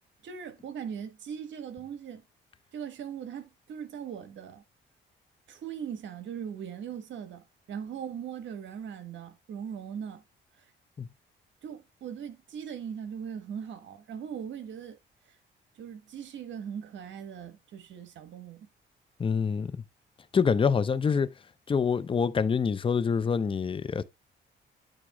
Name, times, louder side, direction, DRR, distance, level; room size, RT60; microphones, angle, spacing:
voice 1, 0.2-2.2 2.7-4.6 5.5-10.2 10.6-10.7 11.6-15.0 15.3-15.4 15.7-18.7, right 8 dB, 70° right, 1.5 m, -40 dB
voice 2, 19.2-19.7 20.3-21.3 21.7-24.0, left 6 dB, 25° left, 0.6 m, -26 dB
8.7 x 2.9 x 4.9 m
cardioid pair, 90°, 20 cm